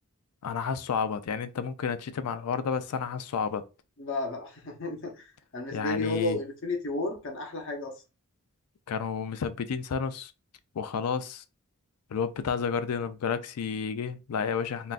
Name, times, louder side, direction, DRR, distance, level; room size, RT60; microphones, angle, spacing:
voice 1, 0.4-3.6 5.7-6.4 8.9-10.3 10.8-11.4 12.1-14.9, left 6 dB, 90° left, 0.4 m, -31 dB
voice 2, 4.0-8.0, left 2 dB, 55° left, 0.8 m, -33 dB
3.7 x 2.2 x 2.4 m
head